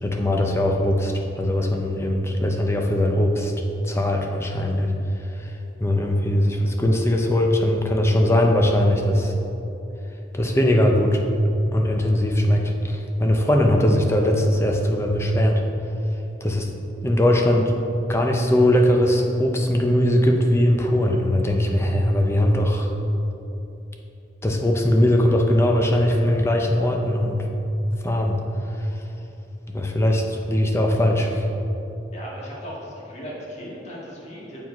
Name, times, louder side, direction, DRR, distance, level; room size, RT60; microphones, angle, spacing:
voice 1, 0.0-3.5 3.8-4.9 5.4-5.5 5.8-9.3 10.3-11.2 11.7-15.6 16.4-16.7 17.0-17.7 18.1-22.9 24.4-27.4 28.0-28.4 29.7-31.4, left 1 dB, 15° left, 2 dB, 0.5 m, -20 dB
voice 2, 32.1-34.6, equal, 40° left, -5 dB, 1.7 m, -37 dB
7.5 x 4.8 x 4.7 m, 2.9 s
head